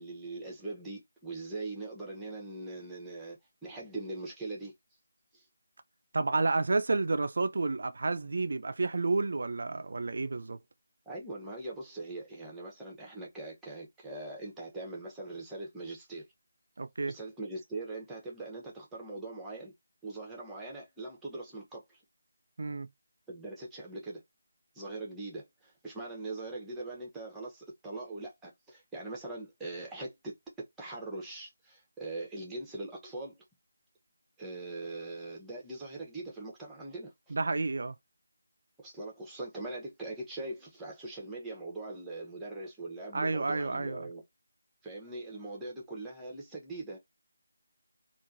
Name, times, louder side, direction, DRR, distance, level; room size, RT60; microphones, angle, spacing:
voice 1, 0.0-4.7 5.3-5.4 11.1-16.3 17.1-19.7 20.0-22.0 23.3-24.2 24.7-30.3 30.8-33.4 34.4-37.3 38.8-44.2 44.8-47.0, right 2 dB, 5° right, 0.9 m, -41 dB
voice 2, 6.1-10.6 16.8-17.1 22.6-22.9 37.3-37.9 43.1-44.1, right 3 dB, 50° right, 0.4 m, -30 dB
3.5 x 2.5 x 2.6 m
figure-of-eight pair, 155°, 0 cm